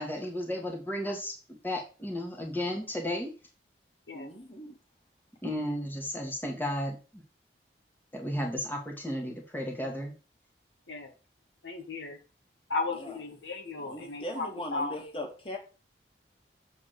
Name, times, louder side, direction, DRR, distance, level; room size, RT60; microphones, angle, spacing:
voice 1, 0.0-3.3 5.4-7.2 8.1-10.1, left 1 dB, 10° left, 1.5 m, -34 dB
voice 2, 4.1-4.8 12.9-13.2 13.8-15.6, left 1 dB, 30° left, 1.8 m, -39 dB
voice 3, 11.6-12.2 12.7-14.9, left 3 dB, 80° left, 1.8 m, -35 dB
7.6 x 3.7 x 6.6 m
head